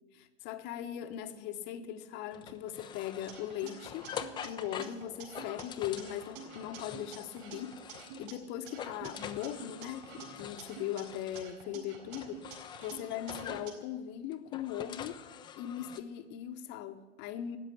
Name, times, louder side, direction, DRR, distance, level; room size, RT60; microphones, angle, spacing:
voice 1, 0.1-15.2 15.6-17.6, left 11 dB, 30° left, 1.1 m, -40 dB
sound 1, 2.3-8.4 8.6-11.5 12.1-13.8 14.3-16.0, left 8 dB, 15° left, 0.6 m, -45 dB
sound 2, 3.3-5.6 6.0-8.3 8.7-11.0 11.3-13.7, right 7 dB, 40° right, 4.2 m, -49 dB
13.5 x 9.3 x 10.0 m
hypercardioid pair, 115°, 35 cm